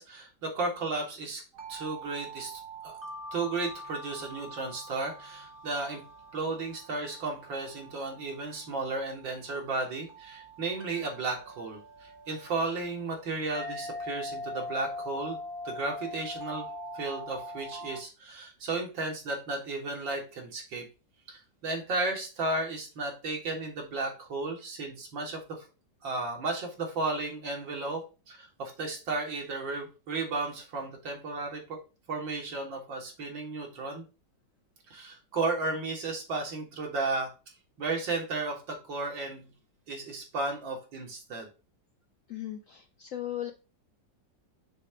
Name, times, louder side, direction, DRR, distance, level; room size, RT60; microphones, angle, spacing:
voice 1, 0.0-1.4 1.7-3.0 3.3-6.0 6.3-15.4 15.6-16.7 16.9-20.8 21.3-25.7 26.0-28.0 28.3-31.8 32.1-34.0 34.9-37.3 37.8-39.5 39.9-41.5, right 3 dB, 85° right, 1 dB, 2.6 m, -34 dB
sound 1, 1.5-18.0, equal, 40° right, 0.9 m, -43 dB
voice 2, 42.3-43.5, left 12 dB, 70° left, 6 dB, 0.7 m, -37 dB
6.7 x 3.4 x 4.9 m, 0.30 s
omnidirectional pair, 2.0 m